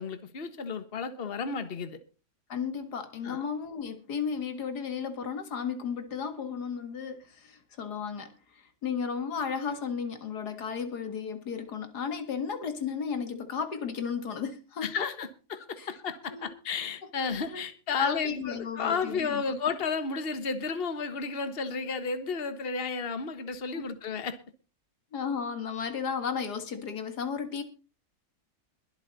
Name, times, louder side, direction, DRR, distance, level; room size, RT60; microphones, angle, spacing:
voice 1, 0.0-2.0 3.2-3.4 14.8-24.4, left 5 dB, 40° left, 1.5 m, -33 dB
voice 2, 2.5-8.3 8.8-15.1 15.8-15.9 16.3-16.5 17.5-17.6 18.0-19.4 23.8-23.9 25.1-27.6, left 6 dB, 90° left, 2.3 m, -34 dB
22.0 x 8.1 x 4.1 m
omnidirectional pair, 1.7 m